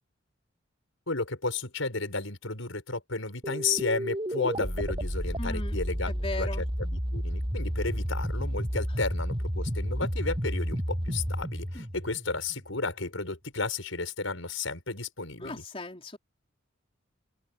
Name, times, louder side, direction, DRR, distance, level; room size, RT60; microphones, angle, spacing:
voice 1, 1.1-15.6, left 3 dB, 90° left, 6.1 m, -33 dB
sound 1, 3.4-12.8, equal, 25° right, 7.2 m, -31 dB
voice 2, 5.4-5.8 6.0-6.6 11.7-11.9 15.4-16.2, left 2 dB, 30° left, 4.1 m, -37 dB
head